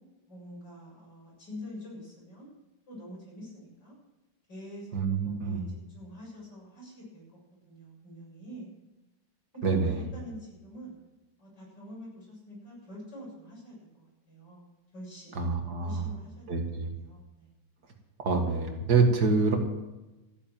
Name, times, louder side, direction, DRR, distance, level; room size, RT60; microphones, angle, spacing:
voice 1, 0.3-2.5 2.9-3.9 4.5-5.0 5.2-7.2 7.6-8.7 9.5-11.0 11.4-15.4 15.8-16.5 17.0-17.5, equal, 65° left, -4 dB, 7.9 m, -46 dB
voice 2, 4.9-5.7 9.6-10.1 15.3-16.1 16.5-16.9 18.2-19.6, right 4 dB, 60° right, 3 dB, 2.4 m, -26 dB
14.0 x 10.0 x 7.6 m, 1.0 s
omnidirectional pair, 2.0 m